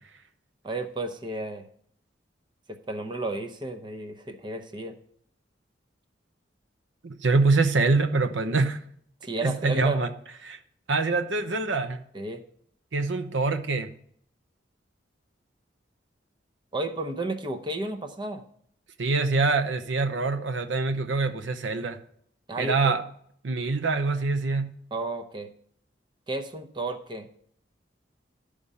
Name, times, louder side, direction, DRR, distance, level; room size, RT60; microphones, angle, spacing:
voice 1, 0.6-1.6 2.7-4.9 9.2-10.0 12.1-12.4 16.7-18.4 22.5-23.0 24.9-25.5 26.3-27.3, right 2 dB, 25° right, 6 dB, 0.7 m, -32 dB
voice 2, 7.0-8.8 9.4-10.1 10.4-10.6 10.9-12.0 12.9-13.9 19.0-22.0 22.6-23.0 23.4-24.8, right 3 dB, 85° right, 9 dB, 0.7 m, -25 dB
11.5 x 5.1 x 5.4 m, 0.63 s
head